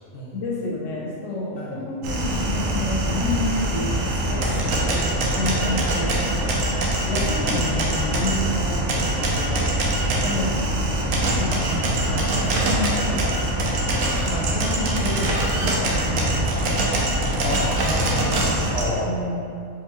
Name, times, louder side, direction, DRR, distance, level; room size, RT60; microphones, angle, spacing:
voice 1, 0.3-5.1 5.4-6.6 7.1-9.9 10.2-10.8 11.2-13.8 14.2-16.7 19.0-19.4, left 2 dB, 75° left, -4 dB, 1.1 m, -30 dB
sound 1, 2.0-18.9, right 1 dB, 85° right, 1.0 m, -23 dB
voice 2, 17.4-19.1, left 1 dB, 55° left, -5 dB, 0.8 m, -31 dB
3.7 x 3.0 x 3.0 m, 2.4 s
omnidirectional pair, 1.3 m